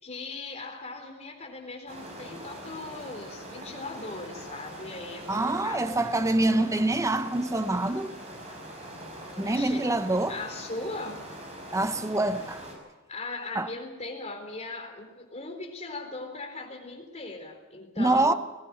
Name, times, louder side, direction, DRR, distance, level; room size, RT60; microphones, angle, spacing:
voice 1, 0.0-6.0 9.3-9.9 10.3-11.2 13.1-18.4, left 2 dB, 30° left, 4.1 m, -39 dB
sound 1, 1.9-12.8, right 1 dB, 30° right, 5.8 m, -43 dB
voice 2, 5.3-8.1 9.4-10.4 11.7-12.6 13.5-13.7 18.0-18.3, right 2 dB, 15° right, 0.8 m, -25 dB
20.5 x 16.0 x 8.8 m
head